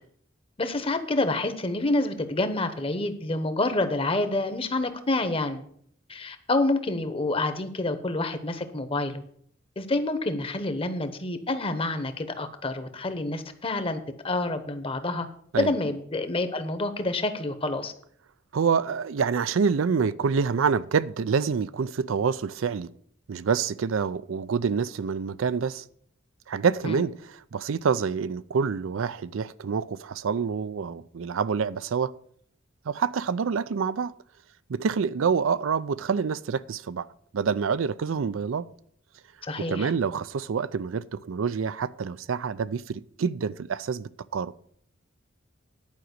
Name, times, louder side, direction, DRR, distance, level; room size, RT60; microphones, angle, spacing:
voice 1, 0.6-5.6 6.1-9.2 9.8-15.3 15.6-17.9 26.8-27.0 39.4-39.9, left 2 dB, 30° left, 1.0 m, -28 dB
voice 2, 18.5-22.9 23.3-25.8 26.5-32.1 32.9-34.1 34.7-37.1 37.3-38.7 39.7-44.5, right 6 dB, 90° right, 0.5 m, -27 dB
10.5 x 5.1 x 8.0 m
head